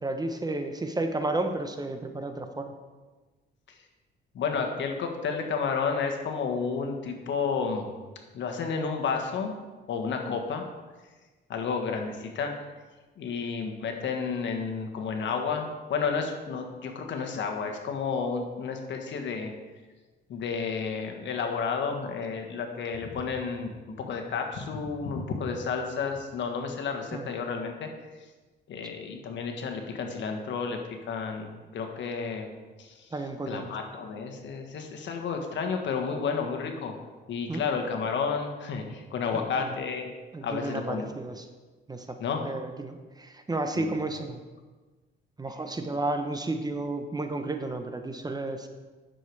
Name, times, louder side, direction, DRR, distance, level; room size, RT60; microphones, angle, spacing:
voice 1, 0.0-2.7 27.1-27.2 33.1-33.7 37.5-37.6 39.3-39.7 40.3-41.4 41.9-42.2 42.4-44.4 45.4-48.7, right 2 dB, 20° right, 7 dB, 0.9 m, -32 dB
voice 2, 4.3-7.9 8.3-9.5 9.9-10.6 11.5-12.5 13.2-19.5 20.3-23.7 24.1-27.9 28.7-30.8 31.1-32.5 32.8-33.1 33.5-36.9 37.3-40.1 40.4-41.1 42.2-42.4 43.8-43.9, left 5 dB, 70° left, 4 dB, 1.5 m, -31 dB
10.0 x 6.7 x 4.8 m, 1.3 s
cardioid pair, 90°, 20 cm